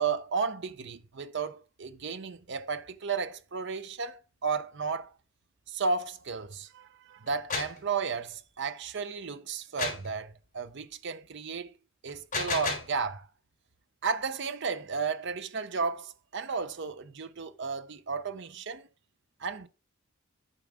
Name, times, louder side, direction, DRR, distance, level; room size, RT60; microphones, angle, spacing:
voice 1, 0.0-5.1 5.7-11.8 12.0-13.3 14.0-18.9 19.4-19.7, right 5 dB, 55° right, 0.6 m, -33 dB
sound 1, 7.3-7.8 9.8-10.1 12.1-13.0, left 4 dB, 35° left, 4.0 m, -32 dB
8.8 x 6.1 x 3.5 m
head